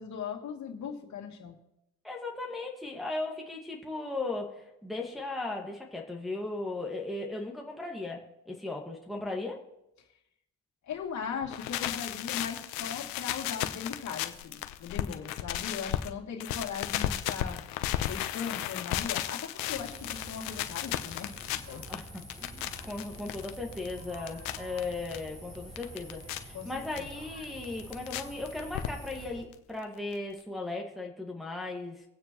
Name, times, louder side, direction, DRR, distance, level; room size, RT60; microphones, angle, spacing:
voice 1, 0.0-1.6 10.8-17.6 18.0-21.3 21.6-21.8 26.5-27.1, left 6 dB, 55° left, 1 dB, 2.6 m, -39 dB
voice 2, 2.0-9.6 21.9-32.0, left 2 dB, ahead, -1 dB, 1.7 m, -37 dB
sound 1, 11.4-16.1 16.4-25.2 25.5-26.4 27.0-27.1 27.4-28.2 28.5-29.2 29.5-29.6 29.8-29.9 30.1-30.2, left 13 dB, 85° left, 1.0 m, -34 dB
sound 2, 19.6-29.4, right 1 dB, 20° right, 3.5 m, -47 dB
25.0 x 8.9 x 3.1 m, 0.87 s
cardioid pair, 105°, 35 cm